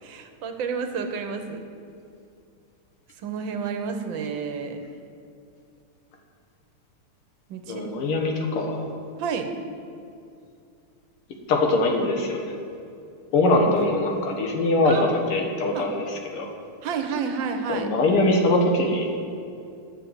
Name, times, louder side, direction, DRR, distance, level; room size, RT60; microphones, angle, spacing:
voice 1, 0.0-1.6 3.2-4.8 7.5-7.9 9.2-9.5 14.8-15.1 15.4-15.5 15.7-15.9 16.8-17.9, right 5 dB, 70° right, 6 dB, 1.5 m, -30 dB
voice 2, 7.7-8.8 11.5-12.4 13.3-16.0 16.3-16.5 17.7-19.1, left 2 dB, 90° left, 2 dB, 2.2 m, -22 dB
9.2 x 7.0 x 7.8 m, 2.5 s
omnidirectional pair, 2.4 m